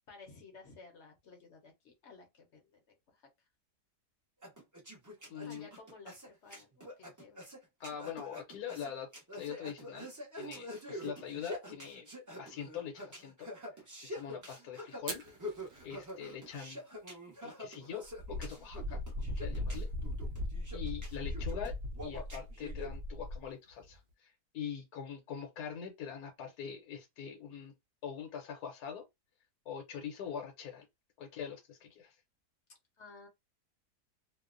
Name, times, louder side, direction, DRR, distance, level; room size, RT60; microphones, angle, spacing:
voice 1, 0.1-3.2 5.4-7.4 33.0-33.3, left 4 dB, 60° left, 0.8 m, -55 dB
sound 1, 4.4-22.9, left 1 dB, 25° right, 0.4 m, -46 dB
voice 2, 5.3-5.7 7.8-10.1 10.4-12.1 12.4-13.5 14.0-15.2 15.8-16.8 17.4-19.0 19.4-19.9 20.7-21.7 22.0-27.7 28.0-29.0 29.7-30.8 31.2-32.1, left 8 dB, 80° left, 1.2 m, -43 dB
Fire, 14.9-24.1, right 4 dB, 55° right, 0.8 m, -54 dB
Wind, 18.1-23.5, left 1 dB, 85° right, 0.5 m, -38 dB
2.8 x 2.0 x 2.4 m
omnidirectional pair, 1.7 m